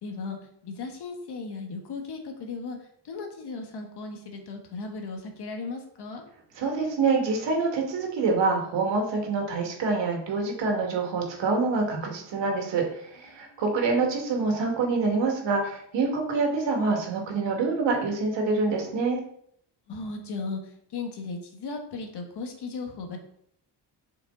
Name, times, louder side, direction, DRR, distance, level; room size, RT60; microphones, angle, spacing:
voice 1, 0.0-2.8 3.0-6.2 13.5-13.6 19.9-20.6 20.9-23.2, left 4 dB, 65° left, 3 dB, 1.6 m, -36 dB
voice 2, 6.6-19.2, right 4 dB, 75° right, 1 dB, 2.2 m, -26 dB
7.4 x 5.5 x 4.0 m, 0.69 s
cardioid pair, 145°, 44 cm